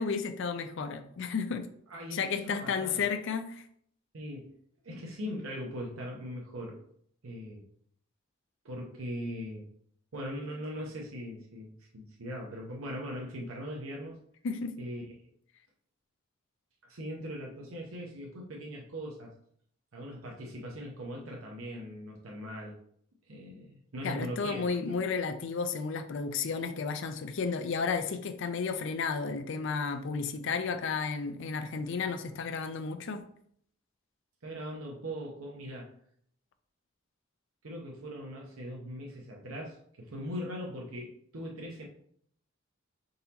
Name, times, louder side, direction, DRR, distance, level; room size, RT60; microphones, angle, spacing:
voice 1, 0.0-1.7 2.1-3.6 14.4-14.7 24.0-33.2, left 5 dB, 60° left, 8 dB, 0.4 m, -32 dB
voice 2, 1.9-3.1 4.1-4.5 4.8-6.8 7.2-7.6 8.6-9.7 10.1-14.2 14.8-15.0 16.8-19.3 19.9-22.8 23.3-24.6 34.4-36.0 37.6-41.8, equal, 85° right, -1 dB, 0.8 m, -40 dB
3.9 x 2.8 x 3.9 m, 0.64 s
head